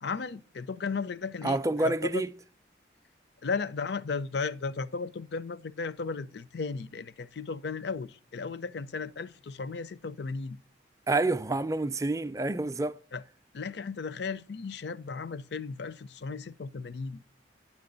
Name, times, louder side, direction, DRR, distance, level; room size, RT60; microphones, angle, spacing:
voice 1, 0.0-2.2 3.4-10.6 13.1-13.2 13.5-17.2, left 4 dB, 60° left, 0.4 m, -35 dB
voice 2, 1.4-2.3 11.1-13.0, right 2 dB, 15° right, 0.4 m, -28 dB
9.5 x 7.2 x 3.9 m
head